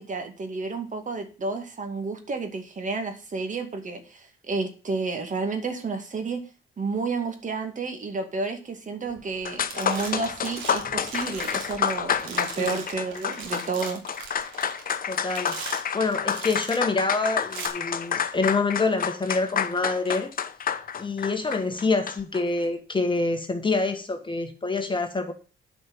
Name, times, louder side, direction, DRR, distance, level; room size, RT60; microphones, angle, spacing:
voice 1, 0.0-6.4 6.8-14.0, right 4 dB, 40° right, 6 dB, 2.3 m, -31 dB
sound 1, 9.2-9.3 9.5-22.4, left 7 dB, 45° left, 0.9 m, -29 dB
sound 2, 9.2-9.4 9.7-16.9 17.4-17.7, right 5 dB, 85° right, 2.8 m, -40 dB
voice 2, 15.0-15.6 15.9-20.3 21.0-25.3, left 3 dB, 25° left, 6 dB, 1.7 m, -26 dB
9.3 x 5.4 x 7.8 m, 0.36 s
cardioid pair, 90°, 20 cm